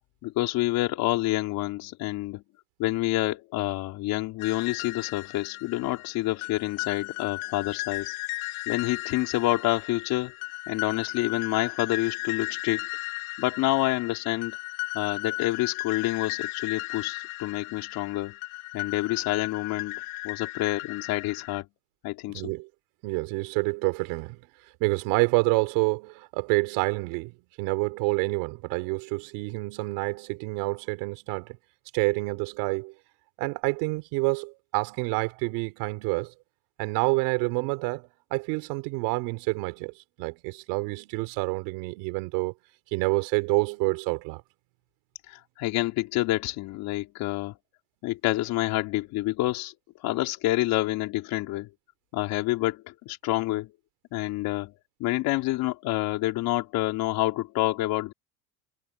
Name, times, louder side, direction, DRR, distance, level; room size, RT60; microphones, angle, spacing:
voice 1, 0.2-2.4 2.8-8.2 8.7-10.3 10.7-12.8 13.4-14.6 14.9-18.3 18.7-21.7 22.0-22.5 45.3-47.6 48.0-49.7 50.0-51.7 52.1-53.7 54.1-54.7 55.0-58.1, left 18 dB, 65° left, 3.4 m, -28 dB
sound 1, 4.4-21.6, left 24 dB, 85° left, 3.6 m, -36 dB
voice 2, 22.3-22.7 23.0-24.4 24.8-31.6 31.9-32.9 33.4-36.3 36.8-42.5 42.9-44.4, right 26 dB, 90° right, 4.4 m, -28 dB
cardioid pair, 150°, 38 cm